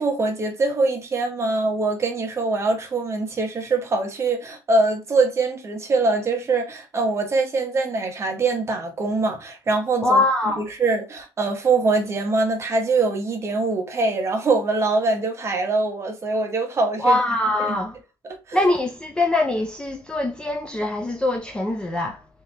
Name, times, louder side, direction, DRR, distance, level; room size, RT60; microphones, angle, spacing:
voice 1, 0.0-10.2 10.6-17.2 17.6-17.8 18.5-18.6, right 3 dB, 30° right, 1.0 m, -23 dB
voice 2, 10.0-10.6 17.0-18.0 18.5-22.2, left 2 dB, 10° left, 0.4 m, -22 dB
3.7 x 2.8 x 3.2 m
cardioid pair, 140°, 10 cm